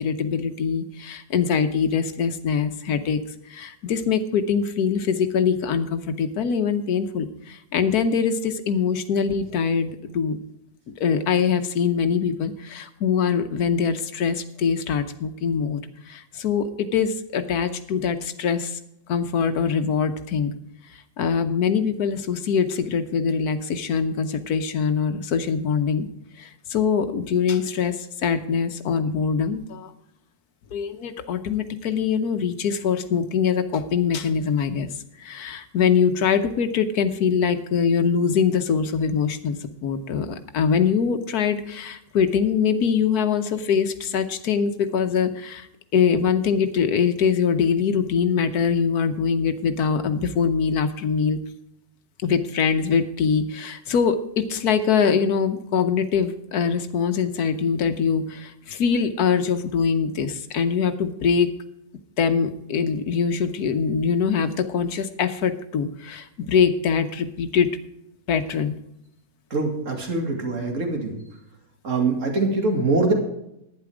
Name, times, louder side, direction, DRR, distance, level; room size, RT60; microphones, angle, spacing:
voice 1, 0.0-3.2 3.5-10.4 10.9-15.8 16.1-18.8 19.1-20.5 21.2-26.1 26.4-29.9 30.7-34.9 35.2-45.7 45.9-51.4 52.2-61.5 62.2-67.7 68.3-68.7, left 6 dB, 75° left, 8 dB, 1.3 m, -23 dB
voice 2, 69.5-71.2 71.8-73.1, right 3 dB, 50° right, 2 dB, 2.6 m, -23 dB
11.5 x 9.7 x 4.9 m, 0.81 s
omnidirectional pair, 1.7 m